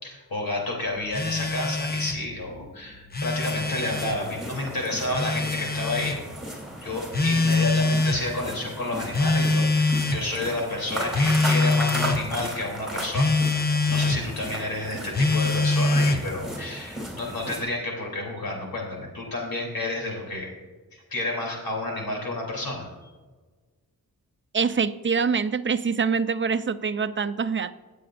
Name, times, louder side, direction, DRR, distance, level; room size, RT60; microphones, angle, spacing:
voice 1, 0.0-6.2 6.8-20.5 20.9-22.9, left 2 dB, 75° left, -1 dB, 3.3 m, -30 dB
Telephone, 1.1-2.2 3.0-4.2 5.1-6.2 7.1-8.2 9.1-10.3 11.1-12.2 13.1-14.2 15.1-16.3, left 3 dB, 25° left, 0.8 m, -23 dB
sound 1, 3.4-17.6, right 1 dB, ahead, 3.4 m, -36 dB
voice 2, 24.5-27.7, right 5 dB, 35° right, 12 dB, 0.5 m, -25 dB
18.5 x 7.8 x 2.6 m, 1.4 s
wide cardioid pair, 110°, 35 cm